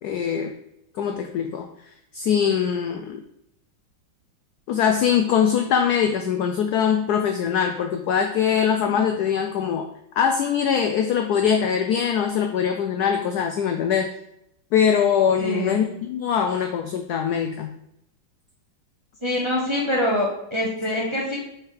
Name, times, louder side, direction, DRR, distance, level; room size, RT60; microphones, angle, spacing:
voice 1, 0.0-0.5 0.9-1.7 2.1-3.2 4.7-9.9 10.2-14.1 14.7-17.7, left 8 dB, 85° left, 5 dB, 0.8 m, -22 dB
voice 2, 15.4-15.8 19.2-21.4, left 1 dB, 25° right, -3 dB, 0.7 m, -25 dB
4.7 x 4.6 x 4.6 m, 0.80 s
omnidirectional pair, 2.2 m